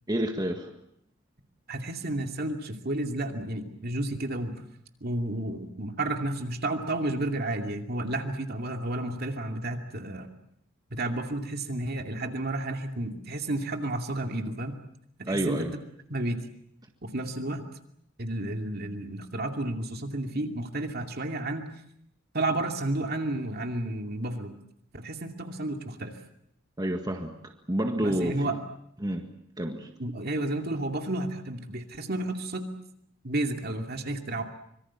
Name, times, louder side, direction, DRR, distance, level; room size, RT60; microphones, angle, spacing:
voice 1, 0.1-0.7 15.3-15.7 26.8-28.5 29.0-29.2 29.6-29.9, right 1 dB, 20° right, 4 dB, 1.7 m, -29 dB
voice 2, 1.7-4.7 5.0-10.3 10.9-14.8 15.2-15.7 16.1-16.4 17.0-17.6 18.2-21.7 22.3-24.5 24.9-26.2 28.0-28.6 30.0-32.7 33.2-34.4, right 1 dB, 50° right, 4 dB, 2.5 m, -31 dB
25.5 x 23.5 x 7.3 m, 0.72 s
head